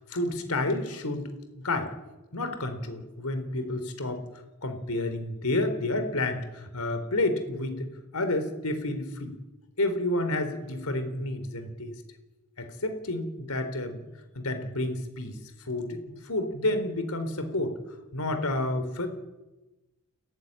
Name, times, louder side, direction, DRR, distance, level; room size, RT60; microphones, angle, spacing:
voice 1, 0.0-1.9 2.3-4.3 4.6-9.3 9.8-11.9 12.6-14.1 14.3-15.4 15.7-17.8 18.1-19.1, left 2 dB, 85° left, 9 dB, 4.1 m, -30 dB
30.0 x 15.0 x 10.0 m, 1.1 s
head